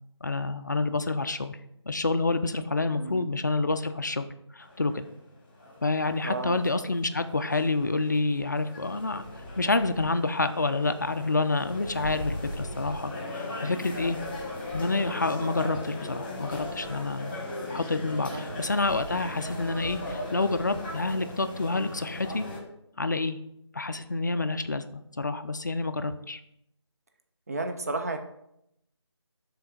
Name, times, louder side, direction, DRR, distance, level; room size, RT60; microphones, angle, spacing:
voice 1, 0.2-1.6 1.9-4.3 4.5-5.0 5.8-14.2 14.7-17.3 17.7-22.4 23.0-23.4 23.7-26.4, left 3 dB, 40° left, 10 dB, 0.4 m, -28 dB
voice 2, 2.9-3.3 6.2-6.6 18.3-18.6 27.5-28.2, right 2 dB, 35° right, 6 dB, 0.6 m, -33 dB
sound 1, 4.6-22.6, left 1 dB, 25° left, 1.1 m, -38 dB
6.6 x 3.8 x 4.1 m, 0.78 s
figure-of-eight pair, 160°, 15 cm